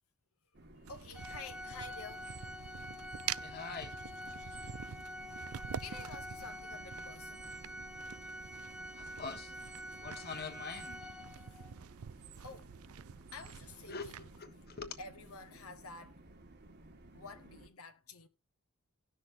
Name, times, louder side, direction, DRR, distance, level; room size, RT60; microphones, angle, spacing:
sound 1, 0.5-17.7, right 1 dB, 50° right, 1.4 m, -57 dB
voice 1, 0.7-2.4 4.3-4.7 5.8-7.5 11.3-11.6 12.3-12.7 13.3-14.2 15.0-16.2 17.1-18.3, left 4 dB, 75° left, 1.1 m, -50 dB
sound 2, 0.9-14.4, right 9 dB, 80° right, 0.4 m, -47 dB
Organ, 1.1-11.7, left 1 dB, 5° right, 1.0 m, -47 dB
voice 2, 3.4-4.0 9.0-9.5 9.9-11.0 13.9-15.0, left 5 dB, 45° left, 1.5 m, -44 dB
18.5 x 6.3 x 2.7 m
head